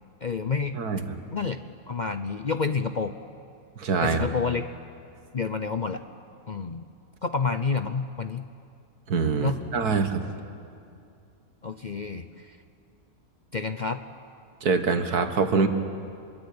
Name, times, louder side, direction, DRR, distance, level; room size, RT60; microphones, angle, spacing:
voice 1, 0.2-0.8 1.3-1.6 1.9-3.1 4.0-4.6 5.3-6.0 6.5-6.9 7.2-8.4 9.4-9.6 11.6-12.6 13.5-14.0, left 5 dB, 45° left, 9 dB, 0.6 m, -29 dB
voice 2, 0.7-1.1 3.8-4.3 9.1-10.3 14.6-15.7, right 4 dB, 80° right, 8 dB, 2.1 m, -24 dB
26.5 x 23.0 x 8.7 m, 2.5 s
omnidirectional pair, 1.6 m